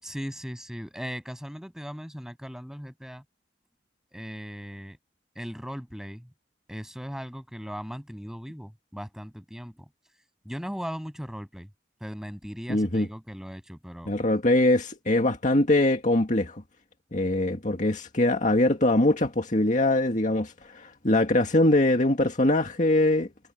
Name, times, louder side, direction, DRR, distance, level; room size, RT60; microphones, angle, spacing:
voice 1, 0.0-3.2 4.1-5.0 5.4-6.3 6.7-9.9 10.5-11.7 12.0-14.1, equal, 5° right, 7.0 m, -38 dB
voice 2, 12.7-13.1 14.1-16.6 17.1-23.3, left 1 dB, 45° left, 2.0 m, -22 dB
head